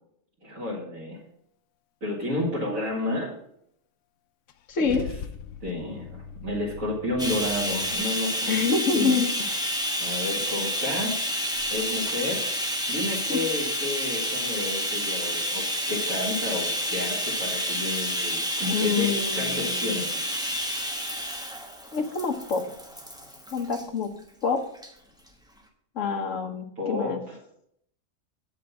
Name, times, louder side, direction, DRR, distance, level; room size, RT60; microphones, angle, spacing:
voice 1, 0.4-1.2 2.0-3.3 4.8-5.0 5.6-8.7 8.9-9.2 10.0-11.2 11.7-12.4 12.9-20.1 26.8-27.4, left 1 dB, 90° right, -6 dB, 2.5 m, -31 dB
Car / Engine starting / Idling, 4.5-8.0, left 6 dB, 90° left, 1.1 m, -40 dB
voice 2, 4.7-5.1 8.5-9.3 13.3-13.4 18.7-20.0 21.9-22.6 23.5-24.1 24.4-24.6 25.9-27.2, left 5 dB, 70° left, 5 dB, 1.5 m, -26 dB
Bathtub (filling or washing), 7.2-23.8 24.7-24.9 25.3-25.4, equal, 5° right, 1.1 m, -29 dB
7.6 x 5.8 x 7.0 m, 0.72 s
omnidirectional pair, 1.4 m